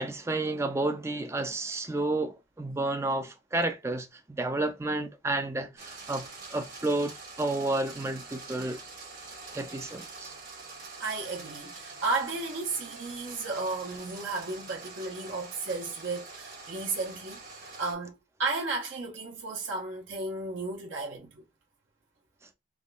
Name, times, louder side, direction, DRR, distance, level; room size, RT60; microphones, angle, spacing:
voice 1, 0.0-8.8 9.5-10.3, right 2 dB, 15° right, 0.3 m, -31 dB
sound 1, 5.8-17.9, right 3 dB, 45° right, 1.1 m, -45 dB
voice 2, 11.0-21.4, right 3 dB, 70° right, 0.8 m, -34 dB
3.5 x 2.2 x 2.5 m
head